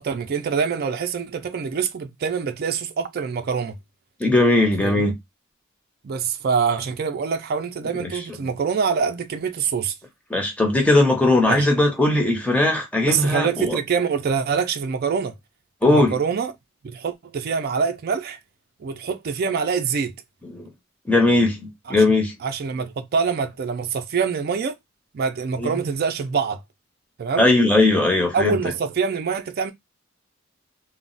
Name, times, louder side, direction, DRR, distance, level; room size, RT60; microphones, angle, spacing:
voice 1, 0.0-3.8 4.8-5.1 6.0-9.9 11.5-11.7 13.1-15.3 15.8-16.5 16.8-18.4 18.8-20.1 21.9-22.0 22.4-24.8 25.1-26.6 27.2-27.5 28.3-29.7, right 6 dB, 50° right, 0.4 m, -25 dB
voice 2, 4.2-5.1 8.0-8.1 10.3-13.8 15.8-16.2 20.5-20.7 21.1-22.3 25.6-25.9 27.4-28.6, left 2 dB, 5° left, 0.7 m, -19 dB
2.3 x 2.0 x 3.8 m
head